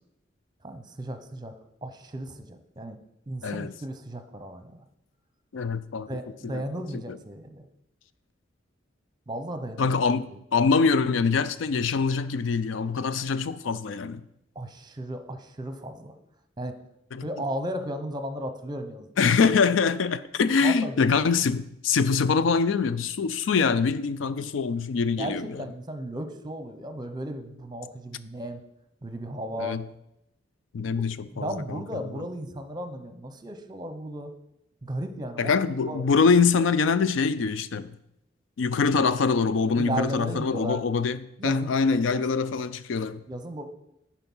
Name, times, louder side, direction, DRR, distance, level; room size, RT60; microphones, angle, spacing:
voice 1, 0.6-1.5 1.8-3.0 3.3-4.8 6.1-7.6 9.3-9.9 10.3-10.4 14.5-16.2 16.6-16.8 17.2-19.1 20.6-20.9 25.2-28.6 29.0-29.8 30.8-30.9 31.3-34.3 34.8-35.5 35.9-36.0 39.8-40.8 41.4-42.3 43.3-43.6, right 1 dB, 20° right, 0.8 m, -35 dB
voice 2, 5.5-6.1 6.4-6.6 7.1-7.2 9.8-14.2 17.1-17.3 19.2-25.5 29.6-29.8 30.7-32.0 35.4-38.0 38.6-43.2, left 5 dB, 80° left, 0.4 m, -24 dB
10.5 x 4.5 x 5.5 m
head